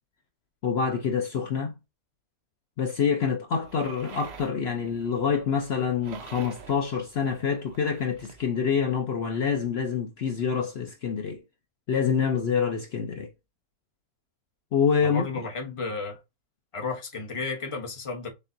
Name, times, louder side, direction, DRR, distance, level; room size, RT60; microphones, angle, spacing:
voice 1, 0.6-1.7 2.8-11.4 11.9-13.3 14.7-15.3, left 6 dB, 60° left, 0.7 m, -26 dB
sound 1, 3.6-8.4, right 7 dB, 55° right, 0.8 m, -47 dB
voice 2, 15.0-16.2 16.7-18.3, left 4 dB, 25° left, 0.9 m, -33 dB
6.5 x 2.4 x 2.6 m
omnidirectional pair, 1.6 m